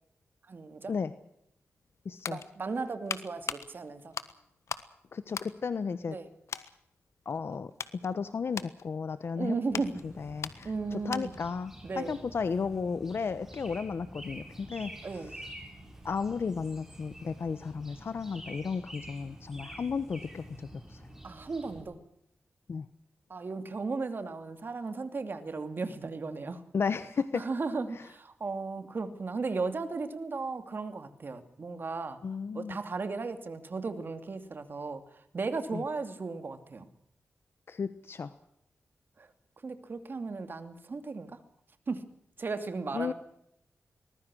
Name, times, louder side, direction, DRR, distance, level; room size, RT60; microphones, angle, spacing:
voice 1, 0.5-0.9 2.3-4.1 6.1-6.3 9.3-10.0 10.6-11.3 11.8-12.2 15.0-15.4 21.2-22.0 23.3-26.6 27.3-32.2 32.5-35.0 35.3-36.9 39.6-41.4 41.9-42.0 42.4-43.1, right 4 dB, 45° right, 9 dB, 2.7 m, -35 dB
sound 1, 1.8-4.9 5.3-6.2 6.5-6.8 7.3-11.5 11.8-12.0, left 7 dB, 85° left, 1.4 m, -41 dB
voice 2, 2.0-2.4 5.1-6.2 7.2-7.7 8.0-9.6 10.0-15.4 16.0-21.0 22.7-22.9 26.7-27.4 27.9-28.0 32.2-32.8 35.7-35.8 37.7-38.3 42.9-43.1, left 5 dB, 55° left, 12 dB, 1.1 m, -34 dB
sound 2, 9.7-21.8, right 1 dB, 10° right, 6.9 m, -48 dB
23.0 x 20.5 x 6.4 m, 0.75 s
wide cardioid pair, 125°, 5 cm